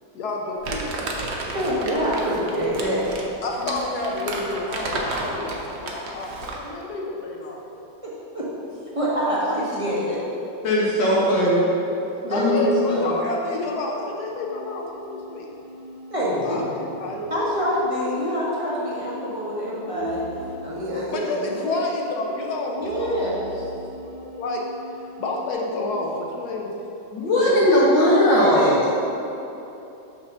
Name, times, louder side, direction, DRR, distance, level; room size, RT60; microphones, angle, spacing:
voice 1, 0.1-0.8 3.4-7.6 11.0-11.4 12.3-15.5 16.4-17.2 21.1-23.5 24.0-24.6 25.2-26.7 27.3-27.7, left 2 dB, 65° left, -1 dB, 1.2 m, -29 dB
Crumpling crinkling, 0.6-6.7, right 2 dB, 55° right, 0.8 m, -32 dB
voice 2, 1.5-3.0 8.0-8.5 8.9-10.2 12.2-13.2 16.1-16.6 17.3-20.2 20.6-21.5 22.7-23.7 28.5-28.9, equal, 25° right, -8 dB, 1.0 m, -25 dB
voice 3, 10.6-11.6 12.3-12.6 16.2-16.4 27.1-28.8, equal, 85° left, -6 dB, 2.2 m, -19 dB
sound 1, 14.3-25.5, equal, 75° right, 1.5 m, -39 dB
6.4 x 4.2 x 6.0 m, 2.9 s
omnidirectional pair, 1.9 m